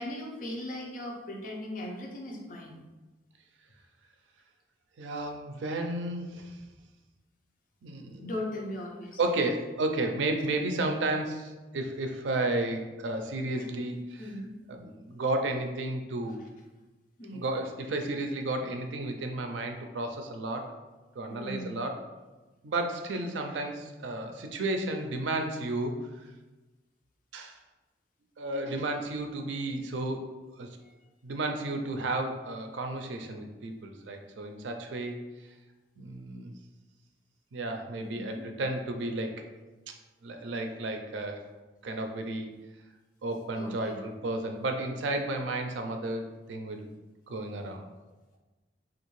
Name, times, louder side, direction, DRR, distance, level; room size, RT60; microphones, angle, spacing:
voice 1, 0.0-2.8 8.2-9.2 13.6-13.7 14.2-14.5 17.2-17.4 21.3-21.8 30.8-30.9 38.0-38.4 43.5-44.0, left 1 dB, 45° left, 0 dB, 0.5 m, -38 dB
voice 2, 5.0-6.6 7.8-8.3 9.2-14.3 14.7-16.4 17.3-20.8 21.2-22.0 22.6-26.1 27.3-27.6 28.4-30.3 30.6-30.8 31.2-35.2 36.0-36.5 37.5-39.3 39.9-40.0 40.2-41.4 41.8-42.5 43.2-46.9 47.3-47.8, right 2 dB, 90° right, 5 dB, 0.4 m, -32 dB
3.4 x 2.5 x 3.1 m, 1.2 s
head